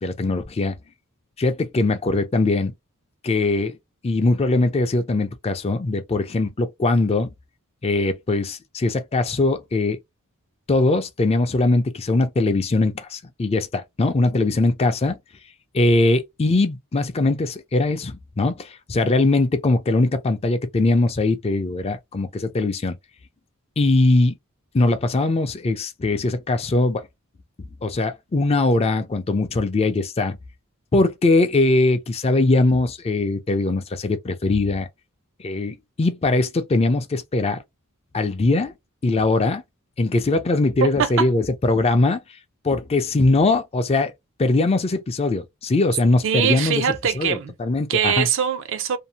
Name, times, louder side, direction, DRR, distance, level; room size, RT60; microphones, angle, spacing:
voice 1, 0.0-0.7 1.4-2.7 3.2-3.8 4.0-7.3 7.8-10.0 10.7-15.2 15.7-23.0 23.8-24.3 24.7-27.0 27.8-30.4 30.9-34.9 35.4-37.6 38.1-38.7 39.0-39.6 40.0-42.2 42.6-44.1 44.4-46.8 47.2-48.3, left 2 dB, 30° left, 0.4 m, -21 dB
voice 2, 40.8-41.3 46.2-47.5 47.9-49.0, right 8 dB, 65° right, 0.5 m, -22 dB
2.6 x 2.0 x 2.8 m
head